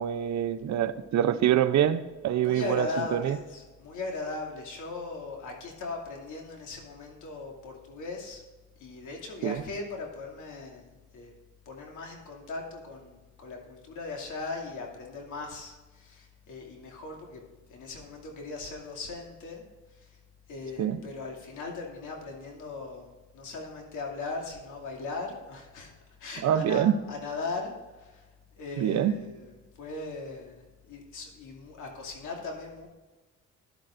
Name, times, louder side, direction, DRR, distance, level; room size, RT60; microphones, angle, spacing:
voice 1, 0.0-3.4 9.4-9.6 20.8-21.0 26.4-26.9 28.8-29.1, right 10 dB, 65° right, 12 dB, 0.7 m, -25 dB
voice 2, 2.4-8.4 8.8-10.9 11.1-11.3 11.7-17.4 17.7-19.6 19.9-20.1 20.5-25.9 26.2-28.2 28.6-32.9, left 3 dB, 80° left, 0 dB, 2.6 m, -39 dB
14.5 x 11.0 x 2.6 m, 1.2 s
cardioid pair, 90°, 30 cm